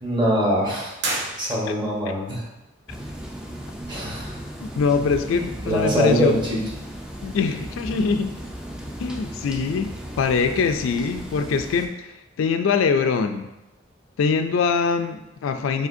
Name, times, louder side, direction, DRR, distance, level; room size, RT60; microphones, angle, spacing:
voice 1, 0.0-2.4 3.9-4.4 5.3-6.6, equal, 20° right, -4 dB, 1.1 m, -24 dB
sound 1, 1.0-2.0, right 2 dB, 55° right, 0.9 m, -30 dB
sound 2, 2.9-11.9, equal, 5° right, 0.3 m, -36 dB
voice 2, 4.6-6.4 7.2-8.3 9.0-11.9 12.4-13.5 14.2-15.9, left 5 dB, 75° left, 7 dB, 0.3 m, -23 dB
4.9 x 3.7 x 2.6 m, 0.95 s
head